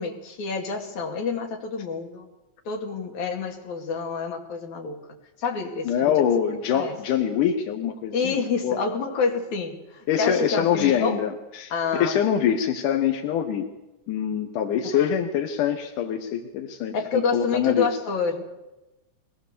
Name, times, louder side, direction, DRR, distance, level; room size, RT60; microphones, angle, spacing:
voice 1, 0.0-2.3 2.7-5.0 5.4-6.2 6.7-7.0 8.1-11.2 11.7-12.2 14.9-15.1 16.9-18.6, left 5 dB, 70° left, 2 dB, 3.7 m, -28 dB
voice 2, 5.9-8.4 8.6-8.8 10.1-13.7 14.1-17.9, left 8 dB, 90° left, 4 dB, 2.7 m, -24 dB
22.5 x 18.5 x 6.9 m, 1.0 s
omnidirectional pair, 3.6 m